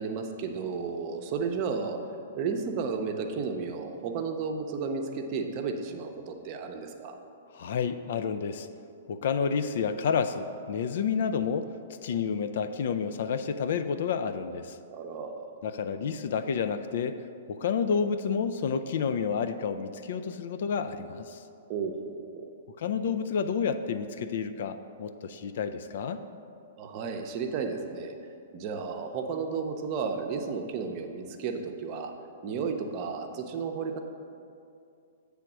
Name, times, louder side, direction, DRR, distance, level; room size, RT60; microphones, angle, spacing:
voice 1, 0.0-2.0 2.4-7.2 14.9-15.5 21.7-22.5 26.8-28.1 28.5-32.1 32.4-34.0, right 5 dB, 40° right, 4 dB, 0.7 m, -33 dB
voice 2, 7.5-8.7 9.1-11.7 12.0-14.8 15.6-17.2 17.5-21.4 22.8-26.2, left 6 dB, 55° left, 11 dB, 0.3 m, -30 dB
7.6 x 3.4 x 6.1 m, 2.5 s
figure-of-eight pair, 110°, 0 cm